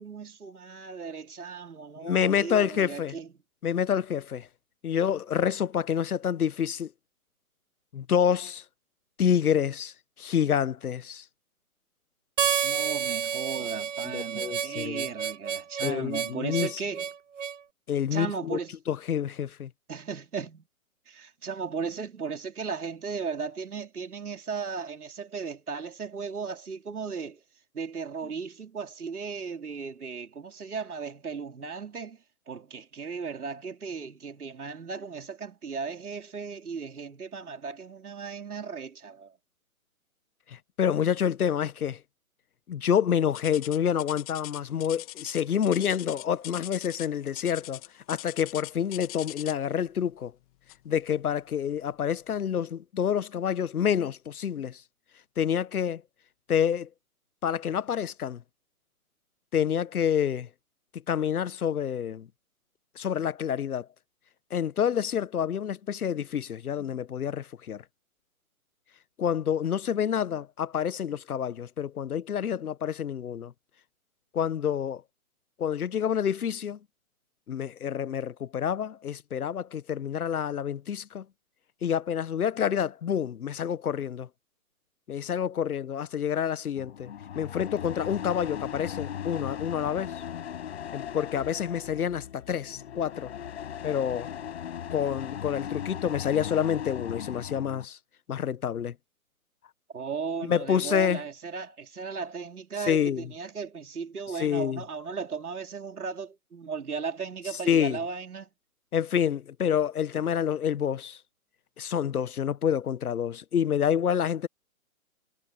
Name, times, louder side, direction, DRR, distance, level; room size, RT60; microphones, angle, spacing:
voice 1, 0.0-3.3 12.6-17.1 18.1-18.7 19.9-20.7 21.1-27.4 27.7-39.4 99.9-108.5, right 5 dB, 85° right, 4.2 m, -36 dB
voice 2, 2.0-3.1 3.6-4.5 4.8-6.9 7.9-8.6 9.2-9.9 10.2-11.2 14.1-15.1 15.8-16.8 17.9-18.6 18.9-19.7 40.8-42.0 42.7-47.8 48.1-50.3 50.8-54.8 55.4-56.0 56.5-56.9 57.4-58.4 59.5-60.5 61.1-62.3 63.0-63.9 64.5-67.8 69.2-73.5 74.3-75.0 75.6-76.8 77.5-81.2 81.8-84.3 85.1-90.2 90.9-93.3 93.8-94.3 94.9-98.0 98.3-98.9 100.4-101.2 102.9-103.3 104.4-104.8 107.7-108.0 108.9-111.2 111.8-114.5, left 8 dB, 85° left, 1.0 m, -28 dB
Harmonica, 12.4-17.6, right 8 dB, 55° right, 1.5 m, -30 dB
sound 1, 43.3-49.7 50.7-50.9 51.5-51.6 52.3-52.4, left 18 dB, 25° left, 2.5 m, -42 dB
sound 2, 86.8-97.8, left 9 dB, 45° left, 5.9 m, -38 dB
hypercardioid pair, 160°, 43 cm